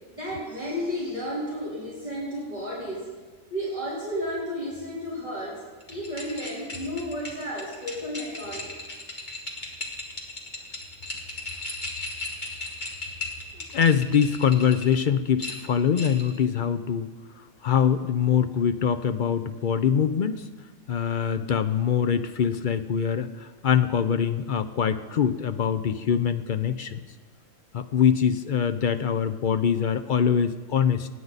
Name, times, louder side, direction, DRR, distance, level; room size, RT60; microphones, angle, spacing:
voice 1, 0.1-3.1 3.5-5.6 5.9-8.7, equal, 30° right, -8 dB, 3.8 m, -32 dB
sound 1, 5.8-14.9 15.4-16.4, left 2 dB, 35° left, 2.1 m, -37 dB
voice 2, 13.7-17.1 17.6-20.5 20.9-27.0 27.7-31.1, left 8 dB, 60° left, 10 dB, 0.5 m, -23 dB
27.0 x 9.5 x 4.0 m, 1.4 s
omnidirectional pair, 1.4 m